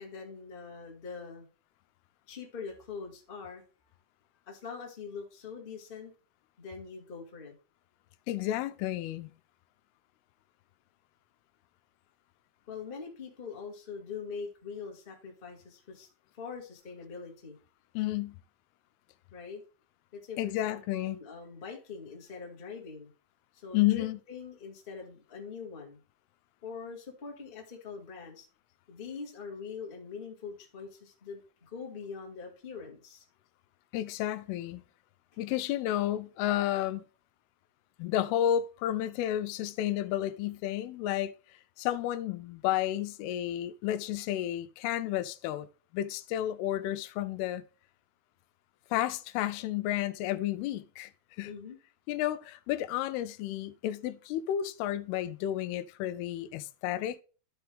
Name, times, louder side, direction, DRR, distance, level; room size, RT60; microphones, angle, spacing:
voice 1, 0.0-1.4 2.3-3.6 4.5-6.1 6.6-7.5 12.7-16.1 16.4-17.6 19.3-19.6 20.1-23.1 23.5-26.0 26.6-28.5 28.9-31.4 31.7-33.2 51.4-51.8, left 5 dB, 40° left, 0.7 m, -43 dB
voice 2, 8.3-9.3 18.0-18.4 20.4-21.2 23.7-24.2 33.9-34.8 35.4-37.0 38.0-41.3 41.8-45.7 45.9-47.6 48.9-51.1 51.4-51.5 52.1-57.2, left 12 dB, 90° left, 2.6 m, -31 dB
12.0 x 4.6 x 3.4 m
omnidirectional pair, 4.5 m